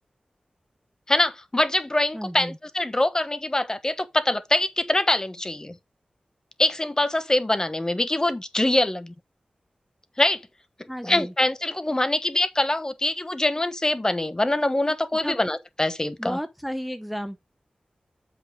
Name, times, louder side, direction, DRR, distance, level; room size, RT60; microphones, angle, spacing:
voice 1, 1.1-5.8 6.6-9.1 10.2-10.4 10.8-16.4, left 1 dB, 25° left, 1.1 m, -24 dB
voice 2, 2.1-2.6 10.9-11.3 15.2-15.4 16.2-17.4, equal, ahead, 0.8 m, -32 dB
7.5 x 5.9 x 3.5 m
wide cardioid pair, 65°, 3 cm